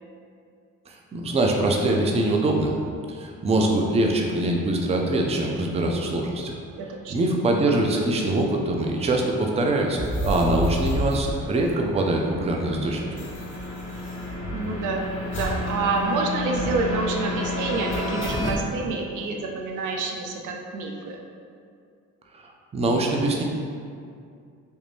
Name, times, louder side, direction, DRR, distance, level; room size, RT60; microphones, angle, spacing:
voice 1, 0.9-2.8 3.1-6.6 7.1-13.1 22.3-23.4, right 2 dB, 20° right, 1 dB, 0.4 m, -23 dB
voice 2, 6.8-7.1 14.5-21.2, right 3 dB, 80° right, 1 dB, 0.5 m, -28 dB
sound 1, 7.0-18.5, left 2 dB, 20° left, 1.1 m, -33 dB
sound 2, 9.9-12.2 12.4-12.5 12.7-14.8 15.3-15.7 16.0-16.1 16.5-17.0 17.9-18.6, equal, 40° left, 0.8 m, -31 dB
3.3 x 2.5 x 3.4 m, 2.3 s
cardioid pair, 90°, 30 cm